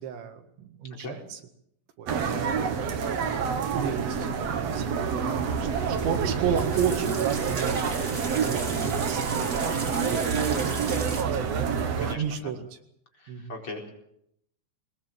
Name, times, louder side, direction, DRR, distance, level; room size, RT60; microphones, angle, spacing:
voice 1, 0.0-1.4 2.0-4.3 4.7-5.0 5.5-11.8 12.1-12.8 13.3-13.5, right 8 dB, 85° right, 5 dB, 4.2 m, -34 dB
sound 1, 2.1-12.2, right 6 dB, 55° right, 2.0 m, -27 dB
sound 2, 5.5-11.2, right 3 dB, 20° right, 2.5 m, -37 dB
voice 2, 11.7-12.5 13.5-13.9, left 2 dB, 30° left, 1 dB, 5.0 m, -39 dB
22.5 x 20.5 x 7.5 m, 0.74 s
omnidirectional pair, 5.0 m